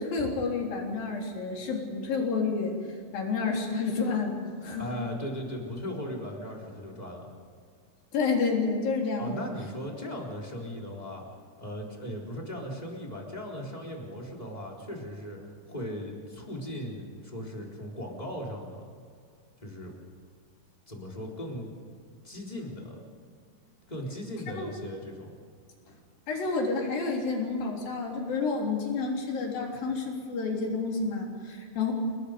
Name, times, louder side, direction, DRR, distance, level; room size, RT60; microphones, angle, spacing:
voice 1, 0.0-4.9 8.1-9.4 24.5-24.7 26.3-31.9, left 4 dB, 80° left, 0 dB, 5.4 m, -30 dB
voice 2, 4.8-7.3 9.2-11.2 11.6-15.4 15.7-18.9 19.6-19.9 20.9-21.7 22.2-23.0 23.9-25.3, equal, 10° left, -2 dB, 3.9 m, -38 dB
30.0 x 20.0 x 5.2 m, 2.1 s
omnidirectional pair, 4.0 m